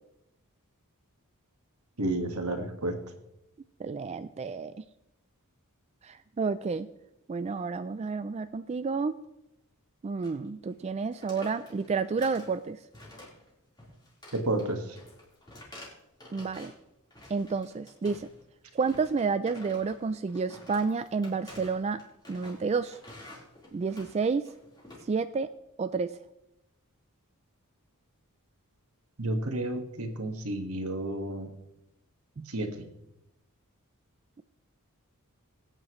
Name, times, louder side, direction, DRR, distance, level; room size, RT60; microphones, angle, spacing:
voice 1, 2.0-3.0 14.3-14.8 29.2-31.5 32.5-32.7, right 1 dB, 75° right, 5 dB, 1.7 m, -31 dB
voice 2, 3.8-4.8 6.0-6.9 7.3-9.2 10.0-12.8 16.3-16.7 17.3-18.3 18.7-22.0 22.3-23.0 23.7-24.5 25.0-25.5 25.8-26.2 32.4-32.5, right 4 dB, 30° right, 11 dB, 0.3 m, -30 dB
sound 1, 10.2-10.5 10.7-10.9 11.1-12.6 12.9-13.5 13.8-16.8 17.1-18.4 18.8-25.0, left 1 dB, 20° left, 3.9 m, -50 dB
22.5 x 9.0 x 3.1 m, 0.88 s
head